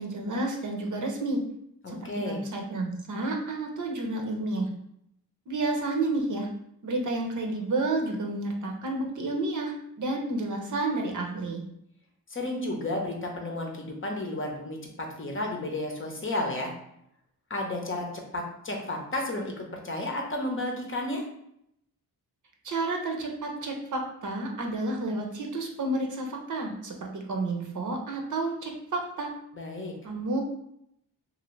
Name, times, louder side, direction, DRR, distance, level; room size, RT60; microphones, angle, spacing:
voice 1, 0.0-1.4 1.9-4.7 5.5-6.5 6.8-11.6 22.6-29.3 30.0-30.4, right 2 dB, 55° right, 1 dB, 0.7 m, -30 dB
voice 2, 1.8-2.4 12.3-16.7 17.5-21.2 29.5-29.9, left 1 dB, 35° left, 1 dB, 0.7 m, -32 dB
2.7 x 2.6 x 3.0 m, 0.75 s
cardioid pair, 70°, 37 cm